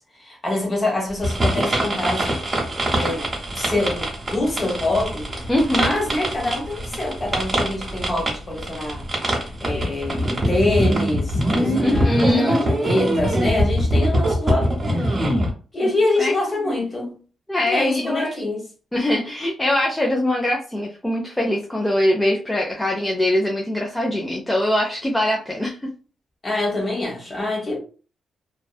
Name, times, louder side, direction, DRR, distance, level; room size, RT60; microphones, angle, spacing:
voice 1, 0.2-2.3 2.9-9.0 9.6-14.7 15.0-15.2 15.7-17.1 17.6-18.6 26.4-27.8, left 2 dB, 30° left, 1.1 m, -25 dB
sound 1, 1.2-15.5, equal, 20° right, 0.8 m, -23 dB
voice 2, 5.5-5.9 11.8-12.7 15.8-15.9 16.2-16.7 17.5-18.3 18.9-25.8, left 1 dB, 10° left, 0.4 m, -22 dB
2.6 x 2.2 x 2.2 m
cardioid pair, 135°, 0 cm